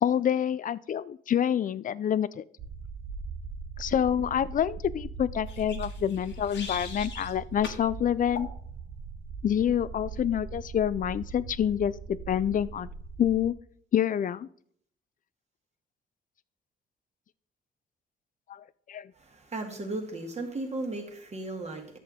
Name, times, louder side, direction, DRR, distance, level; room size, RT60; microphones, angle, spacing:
voice 1, 0.0-2.4 3.8-8.5 9.4-12.9 13.2-13.5 13.9-14.5 18.5-19.1, left 9 dB, 40° left, 18 dB, 0.4 m, -27 dB
sound 1, 2.6-13.5, right 5 dB, 65° right, 1.0 m, -40 dB
sound 2, 5.5-7.3 7.6-7.8 8.3-8.5, left 5 dB, 65° left, 1.7 m, -41 dB
voice 2, 19.1-22.0, right 2 dB, 35° right, 3 dB, 2.1 m, -36 dB
10.5 x 6.9 x 3.7 m, 0.62 s
cardioid pair, 90°, 20 cm